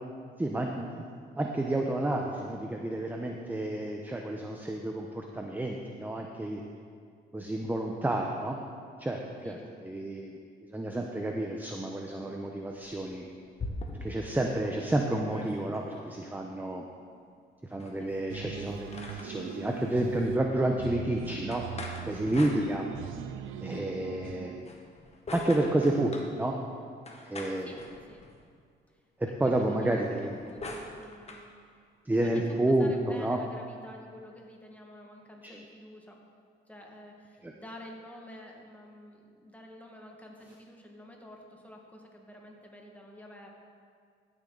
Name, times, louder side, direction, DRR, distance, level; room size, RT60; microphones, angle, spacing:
voice 1, 0.4-0.9 1.4-6.6 7.3-8.6 9.0-9.6 9.8-10.4 10.7-13.3 14.0-16.8 17.7-21.6 22.1-22.9 23.6-24.5 25.3-26.5 27.3-27.7 29.4-30.4 32.1-33.4 35.4-35.5 37.4-37.5, right 1 dB, 10° right, 1 dB, 0.8 m, -30 dB
sound 1, 12.7-14.3 14.7-14.8 15.0-16.1 17.7-19.6 21.5-23.2 24.5-26.3 27.1-28.5 29.9-31.5, left 2 dB, 35° left, 1.5 m, -43 dB
sound 2, 18.3-24.6, right 9 dB, 85° right, 0.5 m, -41 dB
voice 2, 27.6-28.2 28.9-31.5 32.1-36.2 36.7-43.5, left 1 dB, 5° left, 0 dB, 1.8 m, -49 dB
15.0 x 7.4 x 3.9 m, 2.1 s
cardioid pair, 90°, 20 cm